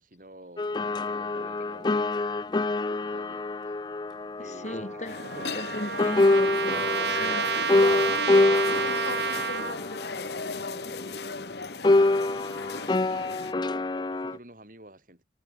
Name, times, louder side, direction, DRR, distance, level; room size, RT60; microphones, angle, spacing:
voice 1, 0.0-2.3 2.8-3.8 4.4-6.3 8.0-9.9 10.3-11.4 11.7-15.2, right 1 dB, 50° right, 7.4 m, -50 dB
sound 1, 0.6-5.7 6.0-11.5 11.8-14.4, left 2 dB, 25° left, 0.4 m, -26 dB
voice 2, 4.4-5.2 5.5-8.2, left 1 dB, 40° left, 3.1 m, -39 dB
Trumpet, 4.6-9.8, right 6 dB, 70° right, 1.2 m, -30 dB
sound 2, 5.0-13.5, left 3 dB, 70° left, 1.7 m, -36 dB
head